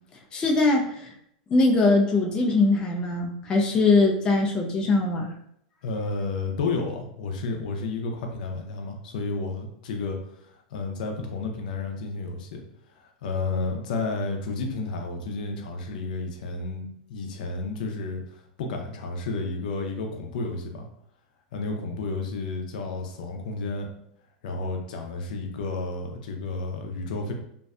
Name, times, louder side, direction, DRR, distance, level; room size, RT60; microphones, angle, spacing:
voice 1, 0.3-1.1 1.5-5.3, left 3 dB, 20° left, 0 dB, 0.3 m, -21 dB
voice 2, 5.8-10.2 10.5-12.6 12.9-20.8 21.5-23.9 24.4-27.3, left 3 dB, 75° left, 3 dB, 0.5 m, -31 dB
2.5 x 2.1 x 2.4 m, 0.72 s
supercardioid pair, 135°, 4 cm